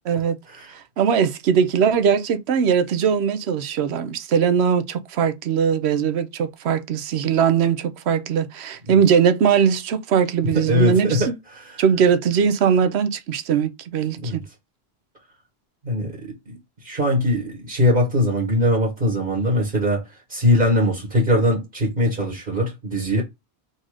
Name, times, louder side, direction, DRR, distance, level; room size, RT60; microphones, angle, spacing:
voice 1, 0.1-0.4 0.7-11.3 11.8-14.5, right 7 dB, 80° right, 0.9 m, -20 dB
voice 2, 10.5-11.3 11.5-11.8 14.2-14.4 15.8-16.6 16.8-20.0 20.3-23.2, left 1 dB, 55° right, 1.5 m, -21 dB
4.0 x 2.6 x 4.8 m
omnidirectional pair, 1.1 m